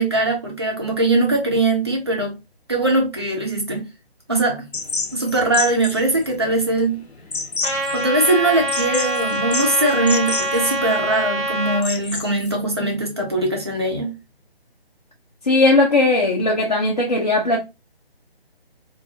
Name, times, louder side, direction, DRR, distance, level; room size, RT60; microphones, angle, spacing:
voice 1, 0.0-2.3 2.7-3.9 4.3-4.7 5.1-7.0 7.9-14.1, right 2 dB, 25° right, 0.4 m, -21 dB
sound 1, 4.7-12.5, left 4 dB, 85° left, 0.6 m, -30 dB
Trumpet, 7.6-11.8, right 1 dB, 15° left, 0.8 m, -24 dB
voice 2, 15.4-17.6, left 2 dB, 40° left, 0.4 m, -17 dB
2.2 x 2.2 x 2.5 m
figure-of-eight pair, 150°, 31 cm